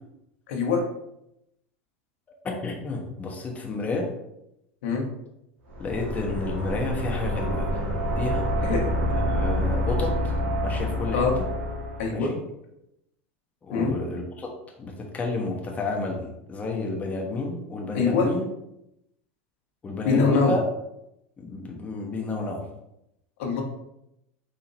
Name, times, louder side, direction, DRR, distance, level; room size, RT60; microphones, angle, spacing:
voice 1, 0.5-0.8 4.8-5.1 8.6-8.9 11.1-11.4 12.0-12.3 13.7-13.9 17.9-18.3 20.0-20.5 23.4-23.6, left 4 dB, 75° left, 1 dB, 1.1 m, -23 dB
voice 2, 2.4-4.1 5.8-7.8 8.2-8.5 9.1-10.4 10.6-11.3 12.1-12.4 13.6-14.5 14.8-18.5 19.8-20.6 21.4-22.6, left 3 dB, 20° left, 0 dB, 0.9 m, -31 dB
sound 1, 5.7-12.2, equal, 75° right, 1.3 m, -27 dB
4.4 x 2.8 x 3.9 m, 0.83 s
hypercardioid pair, 110°, 7 cm